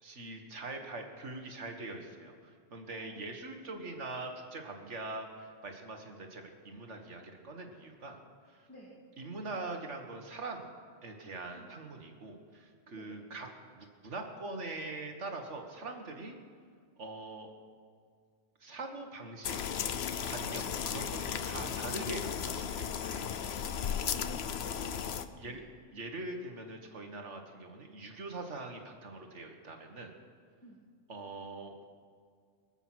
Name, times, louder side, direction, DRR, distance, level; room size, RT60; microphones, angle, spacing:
voice 1, 0.0-8.2 8.5-8.7 9.2-10.7 11.0-16.4 17.0-17.5 18.6-19.6 20.2-22.3 22.6-23.2 25.4-25.6 25.9-30.1 31.1-31.7, right 2 dB, 75° right, 4 dB, 2.0 m, -43 dB
voice 2, 2.9-3.3 3.6-3.7 8.7-8.9 11.5-11.7 12.9-13.1 23.8-25.0 25.4-25.6 30.6-30.8, left 1 dB, 10° left, -7 dB, 2.7 m, -52 dB
sound 1, 19.4-25.3, left 8 dB, 65° left, 0.9 m, -35 dB
24.5 x 8.1 x 6.2 m, 2.1 s
omnidirectional pair, 1.2 m